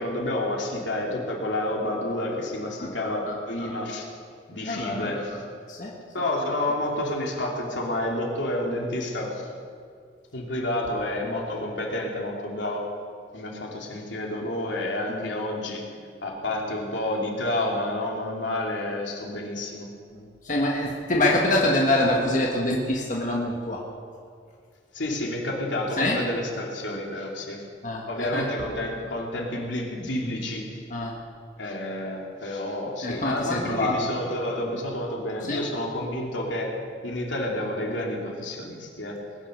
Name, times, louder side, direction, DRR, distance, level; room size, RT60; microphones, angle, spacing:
voice 1, 0.0-4.1 4.5-5.4 6.1-9.5 10.3-12.9 13.3-15.8 16.2-19.9 24.9-27.6 28.1-30.7 31.6-36.7 37.0-39.2, left 1 dB, 80° left, -1 dB, 3.0 m, -29 dB
voice 2, 3.3-3.7 4.7-5.2 5.7-6.0 15.1-15.3 20.1-23.8 26.0-26.2 27.8-28.4 30.9-31.1 33.0-33.9 35.5-35.6, left 1 dB, 45° left, -2 dB, 1.6 m, -25 dB
20.5 x 10.0 x 6.7 m, 2.2 s
head